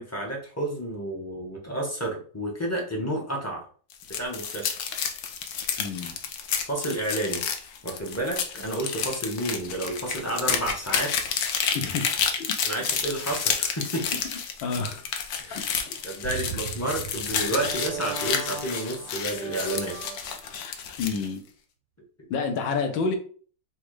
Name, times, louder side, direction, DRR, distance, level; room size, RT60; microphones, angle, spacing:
voice 1, 0.0-3.7 4.1-4.8 6.6-7.4 7.8-11.1 12.6-14.2 15.4-15.7 16.0-19.9, right 1 dB, 15° left, -1 dB, 0.5 m, -30 dB
sound 1, 3.9-21.3, left 7 dB, 65° left, 1.0 m, -30 dB
voice 2, 5.8-6.2 11.7-12.1 12.4-12.5 14.6-15.0 21.0-21.4 22.3-23.2, left 4 dB, 80° left, 5 dB, 1.6 m, -28 dB
sound 2, 16.2-20.7, right 8 dB, 80° right, 1.3 m, -38 dB
4.1 x 2.4 x 4.7 m, 0.43 s
omnidirectional pair, 2.1 m